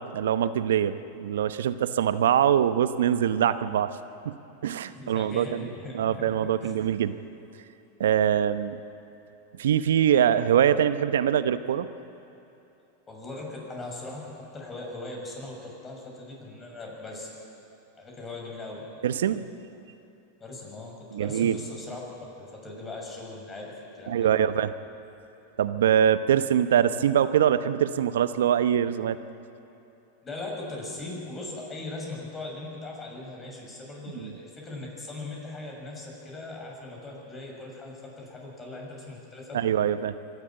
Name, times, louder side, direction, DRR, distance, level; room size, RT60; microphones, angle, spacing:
voice 1, 0.1-4.0 4.2-4.3 4.6-7.2 8.0-8.8 9.6-11.9 19.0-19.5 21.1-21.6 24.1-24.7 25.6-29.2 34.2-34.3 39.5-40.1, right 9 dB, 75° right, 12 dB, 0.9 m, -23 dB
voice 2, 4.9-6.7 13.1-17.3 18.0-18.9 20.4-22.0 22.4-24.3 30.2-39.6, left 2 dB, 25° left, -1 dB, 6.8 m, -39 dB
24.5 x 12.0 x 9.1 m, 2.9 s
hypercardioid pair, 100°, 0 cm